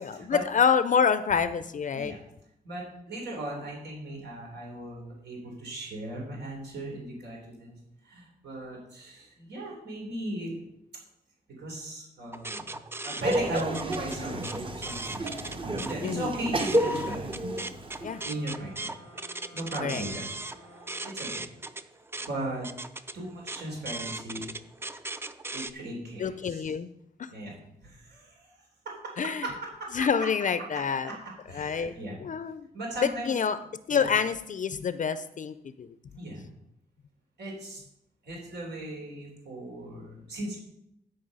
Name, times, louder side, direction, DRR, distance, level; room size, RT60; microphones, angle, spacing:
voice 1, 0.2-2.1 16.0-16.3 18.0-18.2 19.8-20.0 26.2-26.9 29.2-29.5 29.9-31.1 31.5-31.9 32.2-32.7 33.3-33.6 33.9-35.9, left 6 dB, 50° left, 13 dB, 0.5 m, -27 dB
voice 2, 2.6-7.7 8.0-10.6 11.6-12.7 13.0-15.3 15.9-17.3 18.2-18.9 19.5-20.2 21.0-21.3 22.3-22.7 23.1-24.5 25.5-26.7 27.3-27.5 27.8-28.6 28.9-29.1 29.4-30.1 31.1-31.2 31.5-32.2 32.7-33.3 33.9-34.0 36.2-36.5 37.4-37.8 38.2-40.6, right 1 dB, 85° right, -2 dB, 3.7 m, -37 dB
sound 1, 12.3-16.0 16.3-25.7, right 2 dB, 15° right, 0.4 m, -38 dB
Laughter, 13.2-18.3, right 1 dB, 30° right, 0.9 m, -30 dB
sound 2, 17.9-21.8, equal, 50° right, 3.5 m, -54 dB
12.5 x 5.4 x 5.4 m, 0.79 s
wide cardioid pair, 140°, 17 cm